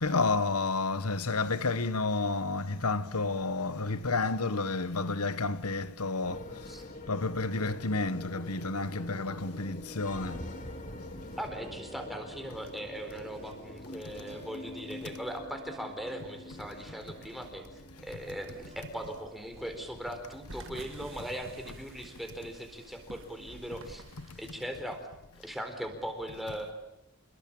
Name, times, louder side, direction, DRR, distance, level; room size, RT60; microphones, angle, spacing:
voice 1, 0.0-6.4 7.1-10.4 11.0-11.1 24.3-24.4, left 3 dB, 85° left, 1.4 m, -30 dB
sound 1, 6.2-24.6, left 1 dB, 35° left, 2.2 m, -46 dB
sound 2, 9.9-20.5 20.9-23.3, right 1 dB, 30° right, 5.1 m, -57 dB
voice 2, 11.4-17.6 18.0-24.0 24.4-25.0 25.4-26.7, equal, ahead, 4.2 m, -39 dB
sound 3, 18.0-24.5, right 2 dB, 60° right, 2.1 m, -51 dB
28.0 x 21.5 x 8.8 m
head